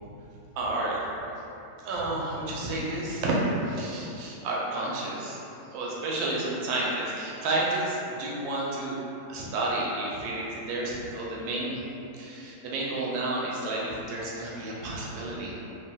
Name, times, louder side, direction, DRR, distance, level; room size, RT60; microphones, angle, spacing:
voice 1, 0.5-1.0 1.8-5.4 5.7-9.0 9.3-11.9 12.2-15.5, right 2 dB, 75° right, -5 dB, 1.0 m, -30 dB
3.3 x 2.2 x 2.2 m, 2.9 s
omnidirectional pair, 1.7 m